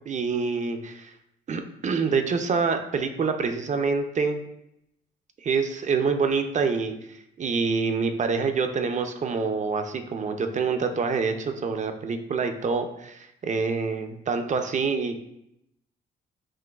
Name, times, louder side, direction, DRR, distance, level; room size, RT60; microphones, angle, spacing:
voice 1, 0.1-1.1 1.5-4.4 5.4-15.2, right 5 dB, 40° right, 7 dB, 0.5 m, -26 dB
6.0 x 2.5 x 2.3 m, 0.79 s
cardioid pair, 90°, 20 cm